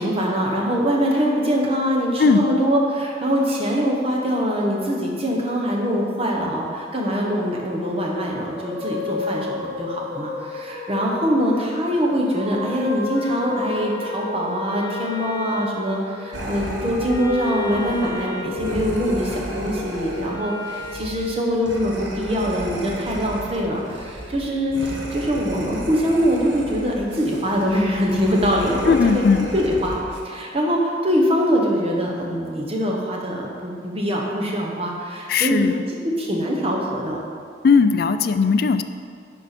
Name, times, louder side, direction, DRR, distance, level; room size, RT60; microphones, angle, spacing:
voice 1, 0.0-29.2 29.5-29.9 30.2-35.8 36.0-37.2, equal, 30° right, -1 dB, 1.1 m, -23 dB
sound 1, 8.5-20.0, left 2 dB, 10° right, 0.7 m, -33 dB
Wind instrument woodwind instrument, 13.1-21.1, left 1 dB, 25° left, 1.2 m, -36 dB
sound 2, 16.3-30.2, right 1 dB, 90° right, 1.0 m, -34 dB
voice 2, 28.9-29.5 35.3-35.7 37.6-38.8, left 5 dB, 50° left, 10 dB, 0.3 m, -17 dB
10.5 x 4.5 x 4.2 m, 2.3 s
head